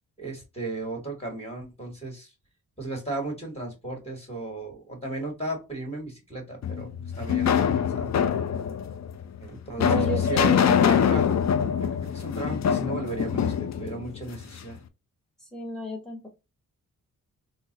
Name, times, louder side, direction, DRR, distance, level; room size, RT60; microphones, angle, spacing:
voice 1, 0.2-2.3 2.8-8.1 9.4-10.5 10.9-11.4 11.8-14.8, right 2 dB, 15° left, 0 dB, 2.0 m, -35 dB
sound 1, 6.6-14.7, left 8 dB, 50° left, 0.5 m, -24 dB
voice 2, 9.8-11.2 15.4-16.3, right 1 dB, ahead, 3 dB, 1.2 m, -32 dB
3.7 x 2.1 x 3.9 m, 0.26 s
cardioid pair, 85°, 34 cm